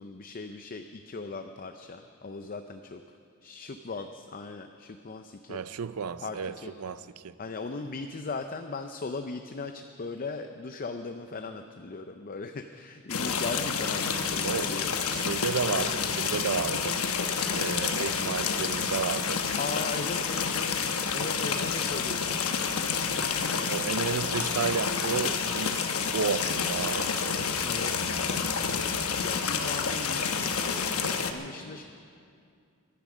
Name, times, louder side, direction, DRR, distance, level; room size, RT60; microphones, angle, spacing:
voice 1, 0.0-3.0 3.4-5.6 6.2-6.7 7.4-14.9 19.6-22.4 27.6-28.2 28.6-31.8, left 3 dB, 40° left, 0.5 m, -38 dB
voice 2, 5.5-7.3 14.4-14.8 15.1-17.0 17.5-19.4 23.7-25.9 26.1-27.4, right 6 dB, 85° right, 0.5 m, -32 dB
sound 1, 13.1-31.3, left 6 dB, 75° left, 1.0 m, -29 dB
22.5 x 10.5 x 6.2 m
head